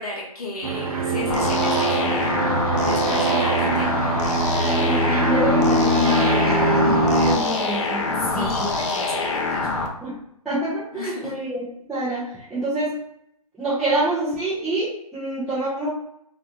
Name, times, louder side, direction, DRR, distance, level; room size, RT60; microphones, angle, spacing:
voice 1, 0.0-2.4 2.8-4.2 8.2-9.7 10.9-11.4, left 2 dB, 80° left, -3 dB, 0.8 m, -33 dB
sound 1, 0.6-7.3, right 2 dB, 70° right, 0.5 m, -22 dB
sound 2, 1.3-9.9, left 3 dB, 50° left, 0.5 m, -25 dB
voice 2, 3.0-3.4 4.7-8.7 10.0-10.2 10.4-13.0 13.6-15.9, right 2 dB, 5° right, -14 dB, 0.4 m, -27 dB
2.5 x 2.1 x 2.9 m, 0.76 s
figure-of-eight pair, 140°, 19 cm